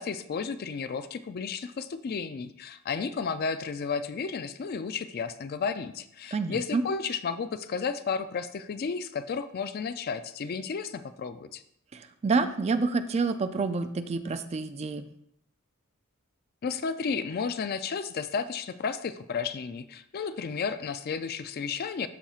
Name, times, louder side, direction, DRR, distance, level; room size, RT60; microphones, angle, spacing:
voice 1, 0.0-11.6 16.6-22.1, left 5 dB, 45° left, 11 dB, 0.4 m, -33 dB
voice 2, 6.3-6.8 11.9-15.0, right 4 dB, 30° right, 10 dB, 0.3 m, -28 dB
12.5 x 4.3 x 2.4 m, 0.75 s
head